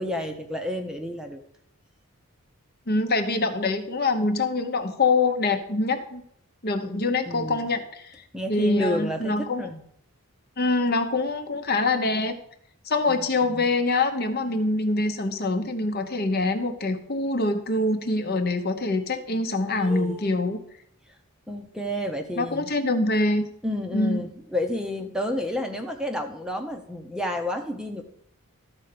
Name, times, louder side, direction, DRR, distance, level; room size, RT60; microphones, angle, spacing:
voice 1, 0.0-1.4 7.3-7.7 8.3-9.8 13.1-13.7 19.6-20.4 21.5-22.7 23.6-28.0, left 1 dB, 5° right, 4 dB, 0.8 m, -31 dB
voice 2, 2.9-6.2 6.6-8.2 8.5-9.7 10.6-12.4 12.8-20.6 22.4-23.4 23.9-24.2, left 2 dB, 45° left, 7 dB, 1.0 m, -24 dB
13.0 x 4.4 x 6.8 m, 0.68 s
head